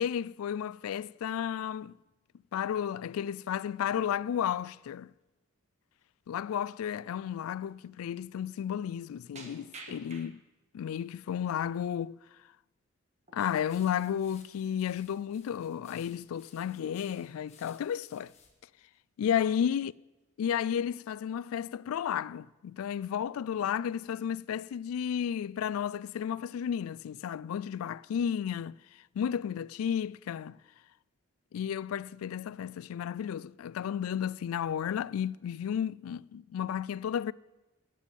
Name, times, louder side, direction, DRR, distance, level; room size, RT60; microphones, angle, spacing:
voice 1, 0.0-1.9 2.5-5.1 6.3-10.4 10.7-12.2 13.3-18.3 19.2-19.9 20.4-28.8 29.2-30.6 31.5-37.3, left 8 dB, 80° left, 0.3 m, -33 dB
sound 1, 5.2-5.5 5.9-6.1 6.7-6.8 7.8-7.9 8.2-8.4 9.4-10.7 11.1-11.8 13.2-13.5 13.8-13.9 14.3-14.5 15.2-15.3 15.5-15.7 16.2-16.7 17.0-17.6 18.2-18.6 18.9-19.0 19.3-20.0 20.5-20.9, right 3 dB, 30° right, 1.4 m, -53 dB
sound 2, 13.4-18.5, left 6 dB, 30° left, 1.5 m, -59 dB
9.3 x 9.1 x 8.8 m
head